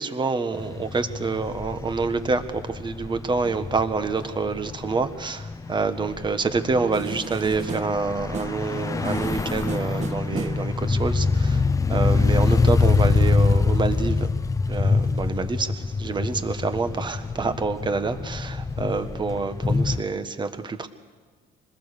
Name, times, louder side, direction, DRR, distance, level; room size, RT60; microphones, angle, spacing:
voice 1, 0.0-11.6 11.9-14.3 14.7-15.7 16.0-20.9, right 4 dB, 25° right, 9 dB, 1.5 m, -27 dB
sound 1, 0.5-20.0, left 4 dB, 20° left, 0.7 m, -25 dB
sound 2, 6.9-8.7 9.0-10.7, right 5 dB, 40° right, 1.4 m, -35 dB
26.0 x 20.5 x 6.8 m, 1.4 s
cardioid pair, 110°, 17 cm